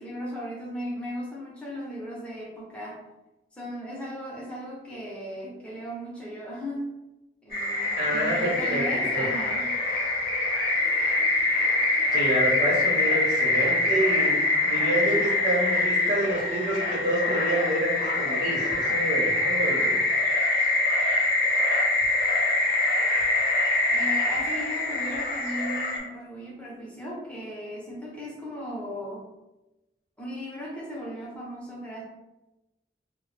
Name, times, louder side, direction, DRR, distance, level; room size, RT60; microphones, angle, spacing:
voice 1, 0.0-3.0 3.5-6.9 7.4-9.7 23.9-29.3 30.2-32.0, equal, 5° left, -5 dB, 0.5 m, -36 dB
sound 1, 7.5-26.0, left 2 dB, 50° left, 0.6 m, -24 dB
voice 2, 7.9-9.3 12.1-20.0, right 1 dB, 60° right, -6 dB, 0.6 m, -28 dB
2.1 x 2.0 x 3.1 m, 1.0 s
head